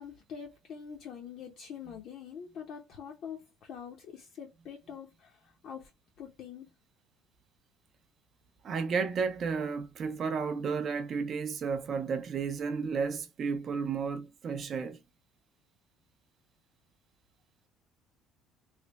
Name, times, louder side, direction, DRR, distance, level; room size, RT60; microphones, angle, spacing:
voice 1, 0.0-5.9 6.2-6.7, left 7 dB, 45° left, 0.7 m, -45 dB
voice 2, 8.6-15.0, right 5 dB, 35° right, 0.5 m, -32 dB
3.3 x 2.1 x 3.9 m
cardioid pair, 170°, 0 cm